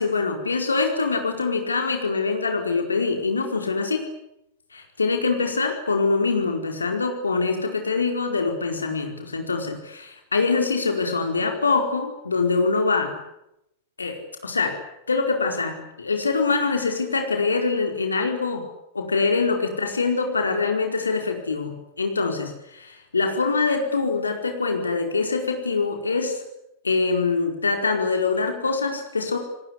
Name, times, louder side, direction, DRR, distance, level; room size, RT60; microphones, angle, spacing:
voice 1, 0.0-4.0 4.7-13.1 14.0-14.8 15.1-18.6 18.9-26.4 26.8-29.4, left 4 dB, 75° left, 4 dB, 4.7 m, -24 dB
29.5 x 19.0 x 9.9 m, 0.85 s
figure-of-eight pair, 90°, 0 cm